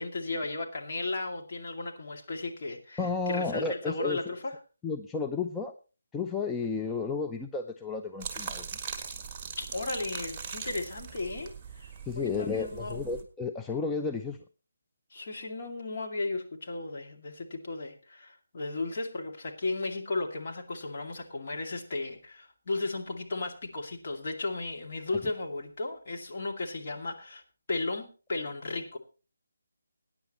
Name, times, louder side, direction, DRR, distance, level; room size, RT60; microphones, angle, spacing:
voice 1, 0.0-4.5 9.6-13.0 15.1-27.4 27.7-29.0, left 2 dB, 40° left, 1 dB, 2.3 m, -35 dB
voice 2, 3.0-4.3 4.8-5.7 6.1-8.7 12.1-14.4, left 4 dB, 10° left, 3 dB, 0.5 m, -32 dB
sound 1, 8.2-13.2, right 5 dB, 15° right, 1.7 m, -40 dB
20.5 x 9.8 x 3.0 m, 0.33 s
figure-of-eight pair, 150°, 0 cm